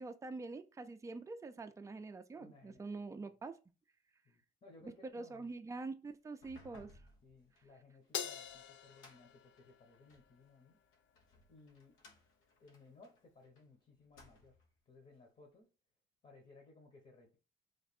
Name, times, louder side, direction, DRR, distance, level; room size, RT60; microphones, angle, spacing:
voice 1, 0.0-3.6 4.8-6.9, right 3 dB, 15° right, 0.4 m, -45 dB
voice 2, 2.4-3.1 4.2-5.5 7.2-10.8 11.5-11.9 12.6-14.5 14.9-15.7 16.2-17.4, left 3 dB, 40° left, 1.1 m, -61 dB
sound 1, 6.3-10.3 10.9-13.6 14.0-14.8, left 2 dB, 90° left, 1.0 m, -63 dB
Crash cymbal, 8.1-10.7, left 8 dB, 70° left, 0.5 m, -45 dB
3.2 x 2.5 x 4.2 m
cardioid pair, 90°, 20 cm